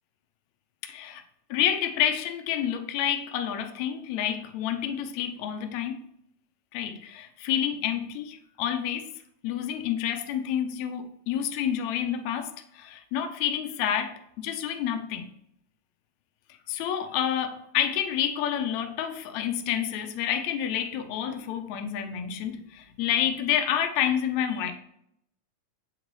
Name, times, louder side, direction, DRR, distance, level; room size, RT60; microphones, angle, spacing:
voice 1, 0.8-1.2 1.5-6.1 6.7-9.1 9.4-15.3 16.7-24.7, left 9 dB, 80° left, 7 dB, 1.6 m, -29 dB
7.9 x 3.9 x 3.1 m, 0.75 s
omnidirectional pair, 3.7 m